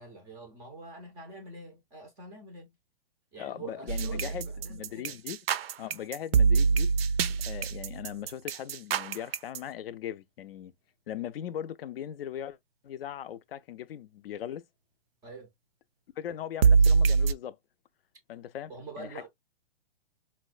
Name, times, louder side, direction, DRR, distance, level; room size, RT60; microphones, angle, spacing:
voice 1, 0.0-2.7 3.3-5.1 15.2-15.5 18.7-19.3, right 3 dB, 10° right, 0.4 m, -45 dB
voice 2, 3.4-5.4 5.8-6.9 7.4-10.7 11.1-12.6 12.8-14.6 16.2-17.6 18.3-18.7 19.0-19.3, left 10 dB, 70° left, 0.4 m, -39 dB
sound 1, 3.9-9.6 16.6-17.3, right 5 dB, 70° right, 0.5 m, -24 dB
4.0 x 2.2 x 2.3 m
hypercardioid pair, 140°, 31 cm